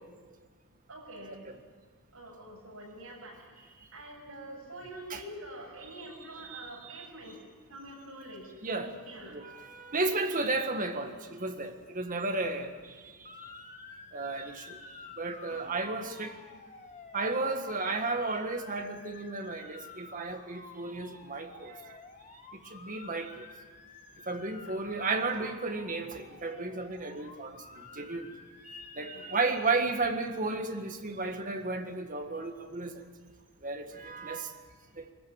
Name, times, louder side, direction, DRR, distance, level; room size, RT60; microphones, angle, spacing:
voice 1, 0.9-1.4 2.1-3.7 3.9-9.5 15.5-15.7 24.6-24.7 29.1-29.4 33.8-34.0, right 1 dB, 70° right, -3 dB, 7.9 m, -46 dB
voice 2, 6.3-7.1 8.6-8.9 9.3-12.7 14.1-14.8 15.2-16.3 17.1-22.0 22.7-23.5 24.3-28.3 28.6-33.0 33.6-34.5 35.0-35.1, right 3 dB, 35° right, 5 dB, 1.6 m, -33 dB
Motor vehicle (road) / Siren, 13.2-29.5, left 4 dB, 30° left, 1.4 m, -51 dB
22.0 x 14.5 x 8.8 m, 1.5 s
head